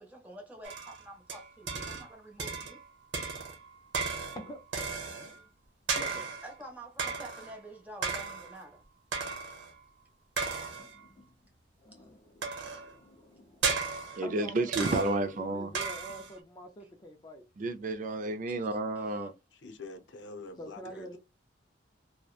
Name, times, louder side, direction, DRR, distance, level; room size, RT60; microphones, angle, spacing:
voice 1, 0.0-2.8 6.4-8.8 12.5-12.8 18.5-19.3, right 1 dB, 10° right, 0.8 m, -48 dB
sound 1, 0.6-2.1 2.4-2.9 3.1-5.4 5.9-6.5 7.0-7.6 8.0-8.6 9.1-9.7 10.4-11.0 12.4-12.9 13.6-14.3 14.7-15.3 15.7-16.4, right 5 dB, 75° right, 0.8 m, -35 dB
voice 2, 5.9-6.3 10.7-11.4 11.8-17.5 20.6-21.2, equal, 25° left, 0.4 m, -47 dB
voice 3, 14.2-15.7 17.6-19.3, right 2 dB, 45° right, 0.4 m, -31 dB
voice 4, 19.5-21.2, left 3 dB, 75° left, 0.6 m, -46 dB
2.8 x 2.1 x 2.3 m
head